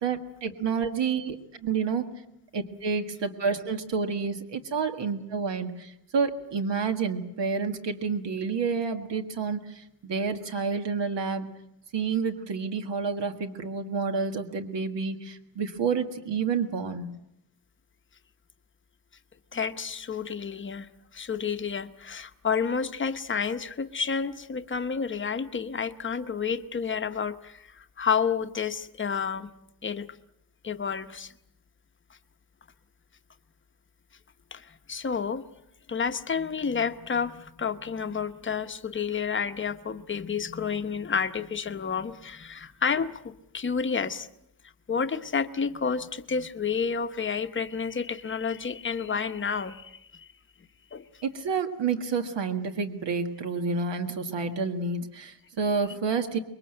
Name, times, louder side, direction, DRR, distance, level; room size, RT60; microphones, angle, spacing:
voice 1, 0.0-2.1 2.5-11.5 11.9-17.1 51.2-56.4, right 5 dB, 65° right, 6 dB, 1.8 m, -29 dB
voice 2, 19.5-29.5 29.8-30.1 30.6-31.3 34.5-35.4 35.9-44.3 44.9-50.3 50.9-51.0, left 6 dB, 25° left, 9 dB, 0.9 m, -30 dB
25.5 x 22.5 x 7.9 m, 0.79 s
wide cardioid pair, 175°, 46 cm